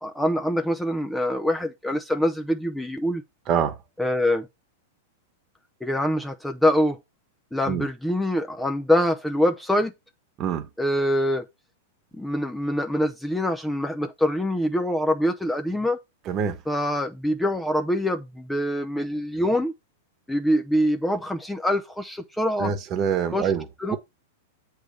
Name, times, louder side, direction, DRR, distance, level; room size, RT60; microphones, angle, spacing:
voice 1, 0.0-3.2 4.0-4.5 5.8-7.0 7.5-9.9 10.8-11.5 12.1-16.0 16.7-19.7 20.3-22.7 23.3-23.5 23.8-24.0, equal, 5° left, 0.6 m, -24 dB
voice 2, 3.5-3.8 7.7-7.8 10.4-10.7 16.2-16.6 22.6-24.0, right 7 dB, 30° right, 1.2 m, -25 dB
7.8 x 3.4 x 6.4 m
supercardioid pair, 140°, 0 cm